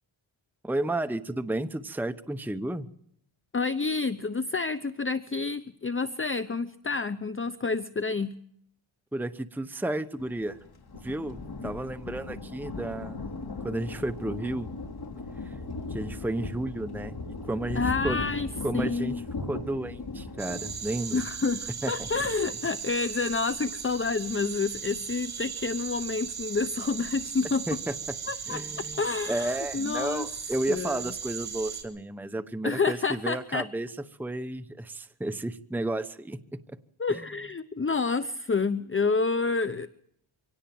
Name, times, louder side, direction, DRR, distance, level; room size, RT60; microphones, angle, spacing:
voice 1, 0.6-2.9 9.1-10.6 10.9-11.4 11.6-13.4 13.6-14.7 15.4-15.5 15.9-17.2 17.4-18.2 18.6-19.2 19.5-21.2 21.8-22.1 27.7-27.9 28.5-29.0 29.3-33.9 34.2-36.8 37.1-37.2, right 1 dB, 5° right, 11 dB, 1.0 m, -32 dB
voice 2, 3.5-8.3 17.7-18.5 18.7-19.2 21.1-27.7 28.3-30.3 30.7-31.0 32.6-33.7 37.0-39.9, left 4 dB, 25° left, 12 dB, 0.8 m, -29 dB
Thunder, 10.2-22.5, left 3 dB, 50° left, 3.1 m, -38 dB
sound 1, 20.4-31.8, right 7 dB, 70° right, 5.6 m, -37 dB
25.0 x 17.5 x 7.7 m, 0.69 s
cardioid pair, 75°, 49 cm